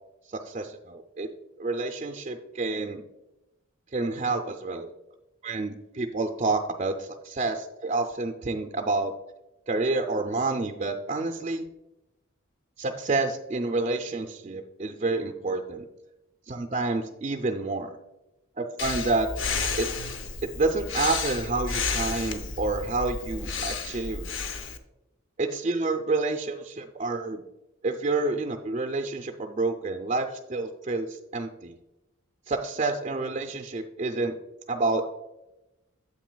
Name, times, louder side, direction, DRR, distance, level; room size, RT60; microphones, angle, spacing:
voice 1, 0.3-1.3 1.6-3.0 3.9-4.9 5.4-9.1 9.7-11.6 12.8-15.8 16.5-18.0 18.6-19.3 19.8-19.9 20.4-24.3 25.4-27.4 27.8-31.8 32.5-34.4 34.7-35.1, right 3 dB, 30° right, 4 dB, 0.4 m, -29 dB
Breathing, 18.8-24.8, left 4 dB, 60° left, 0.6 m, -32 dB
9.0 x 7.8 x 2.2 m, 0.97 s
head